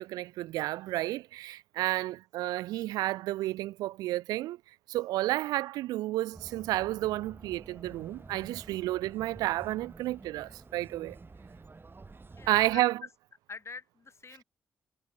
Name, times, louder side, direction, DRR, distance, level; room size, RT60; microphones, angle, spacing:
voice 1, 0.0-4.6 4.9-11.2 12.5-13.0, right 16 dB, 85° right, 0.9 m, -31 dB
voice 2, 1.8-2.1 12.4-12.9 13.5-14.4, left 5 dB, 45° left, 4.2 m, -45 dB
sound 1, 6.3-12.8, right 3 dB, 35° right, 2.6 m, -50 dB
hypercardioid pair, 45°, 6 cm